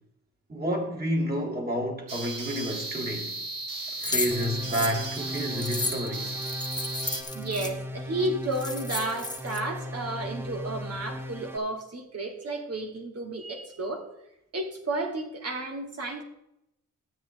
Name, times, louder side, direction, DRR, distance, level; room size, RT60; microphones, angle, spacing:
voice 1, 0.5-3.3 4.0-6.4, equal, 30° right, 3.3 m, -30 dB
sound 1, 2.1-7.2, right 2 dB, 85° right, 1.9 m, -36 dB
sound 2, 4.0-7.7 8.2-8.3 8.5-9.6, left 3 dB, 15° left, 1.6 m, -33 dB
sound 3, 4.3-11.6, equal, 5° right, 1.2 m, -37 dB
voice 2, 7.3-14.1 14.5-16.2, right 2 dB, 50° right, 2.8 m, -32 dB
12.5 x 8.7 x 3.6 m
cardioid pair, 85°, 31 cm